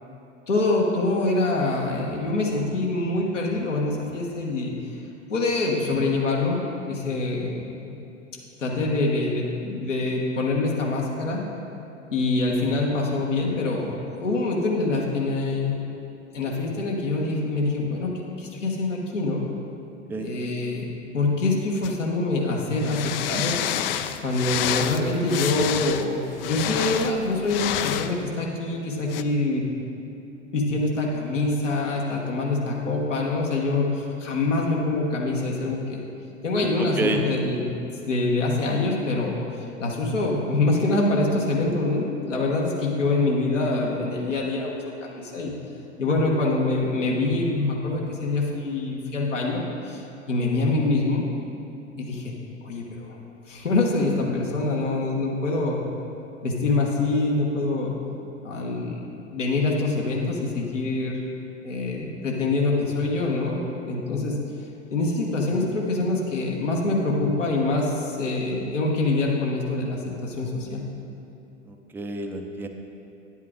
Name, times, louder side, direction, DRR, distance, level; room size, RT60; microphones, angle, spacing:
voice 1, 0.5-4.7 5.3-7.6 8.6-11.4 12.1-15.7 16.3-19.4 20.2-20.9 21.1-23.6 24.2-29.6 30.5-36.0 36.4-37.8 38.1-39.4 39.8-44.8 45.1-45.5 46.0-49.6 49.9-51.2 52.0-52.3 52.6-53.2 53.5-55.8 56.4-57.9 58.4-59.0 59.3-61.2 61.6-64.4 64.9-70.8, left 2 dB, 75° left, -2 dB, 1.5 m, -25 dB
sound 1, 21.8-21.9 22.8-28.1 29.1-29.2, left 10 dB, 50° left, 0.5 m, -28 dB
voice 2, 36.8-37.2 71.7-72.7, right 2 dB, 5° right, 4 dB, 0.4 m, -29 dB
10.0 x 8.1 x 3.7 m, 2.8 s
figure-of-eight pair, 90°, 37 cm